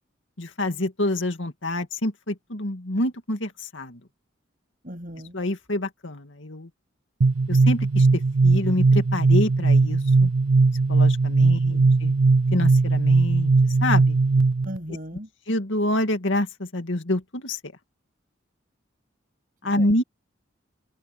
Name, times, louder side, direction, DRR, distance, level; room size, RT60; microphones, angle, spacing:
voice 1, 0.4-4.0 5.3-6.7 7.5-10.3 10.9-12.1 12.5-13.5 13.8-14.2 15.5-17.7 19.6-20.0, left 1 dB, 70° left, 2.3 m, -27 dB
voice 2, 4.8-5.4 11.4-12.0 14.6-15.3 19.6-19.9, equal, 45° right, 7.8 m, -38 dB
sound 1, 7.2-14.8, right 3 dB, 85° right, 0.6 m, -19 dB
head